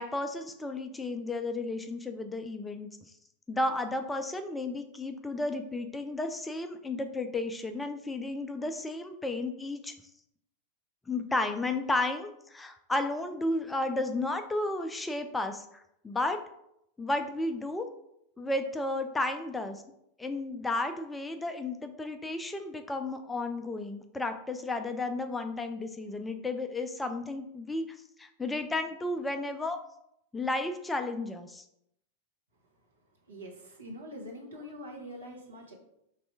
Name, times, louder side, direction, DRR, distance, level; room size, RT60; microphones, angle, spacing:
voice 1, 0.0-2.9 3.5-9.9 11.1-16.4 17.0-17.9 18.4-19.8 20.2-27.8 28.2-29.8 30.3-31.6, left 2 dB, 10° left, 7 dB, 0.3 m, -33 dB
voice 2, 33.2-35.7, equal, 70° right, -1 dB, 1.1 m, -44 dB
3.3 x 2.6 x 4.5 m, 0.78 s
figure-of-eight pair, 90°, 0 cm